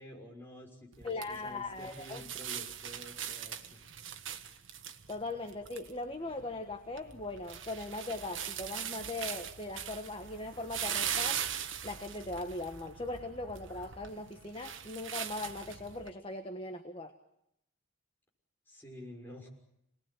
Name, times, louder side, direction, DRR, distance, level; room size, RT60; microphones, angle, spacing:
voice 1, 0.0-3.8 18.7-19.5, equal, 10° left, -1 dB, 6.3 m, -50 dB
sound 1, 0.9-16.1, right 9 dB, 70° right, 1.5 m, -41 dB
voice 2, 1.0-2.2 5.1-11.4 11.8-17.1, left 2 dB, 25° left, 6 dB, 1.3 m, -39 dB
28.0 x 20.5 x 9.3 m, 0.79 s
head